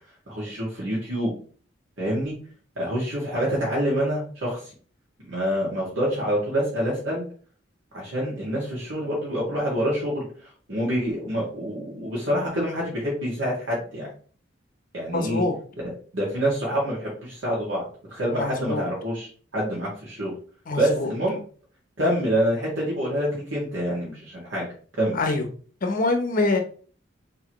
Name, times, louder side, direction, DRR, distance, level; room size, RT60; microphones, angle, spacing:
voice 1, 0.3-1.3 2.0-2.4 2.8-4.6 5.2-7.2 7.9-10.2 10.7-14.1 14.9-15.4 16.1-19.3 19.5-20.3 20.8-21.4 22.0-24.7 25.0-25.2, equal, 80° right, -5 dB, 2.0 m, -26 dB
voice 2, 15.1-15.5 18.3-18.9 20.7-21.1 25.1-25.5 25.8-26.6, left 2 dB, 45° left, 5 dB, 0.8 m, -25 dB
4.7 x 3.7 x 3.0 m, 0.42 s
head